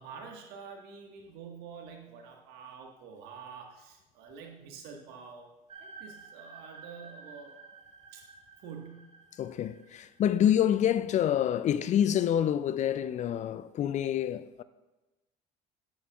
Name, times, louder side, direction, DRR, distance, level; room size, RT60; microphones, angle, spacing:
voice 1, 0.0-5.5 5.8-7.5 8.1-8.2 8.6-9.1, right 6 dB, 70° right, 1.5 m, -47 dB
sound 1, 5.7-11.9, right 4 dB, 35° right, 1.0 m, -52 dB
voice 2, 9.4-14.6, left 10 dB, 45° left, 0.4 m, -27 dB
9.6 x 8.7 x 2.4 m
hypercardioid pair, 75°, 17 cm